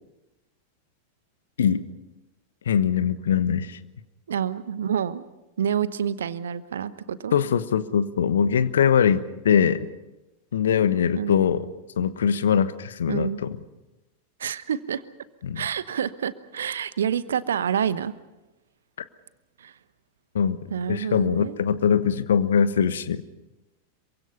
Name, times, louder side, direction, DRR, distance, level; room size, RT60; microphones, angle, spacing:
voice 1, 2.7-3.8 7.3-9.9 10.5-11.6 12.0-13.5 15.4-15.6 20.3-20.6 20.9-23.2, left 7 dB, 65° left, 14 dB, 1.1 m, -22 dB
voice 2, 4.3-5.2 5.6-7.3 11.2-11.5 13.1-13.4 14.4-15.0 15.5-18.1 19.6-19.7 20.7-21.6, right 8 dB, 65° right, 16 dB, 1.0 m, -28 dB
27.0 x 24.0 x 5.7 m, 1.0 s
figure-of-eight pair, 90°, 0 cm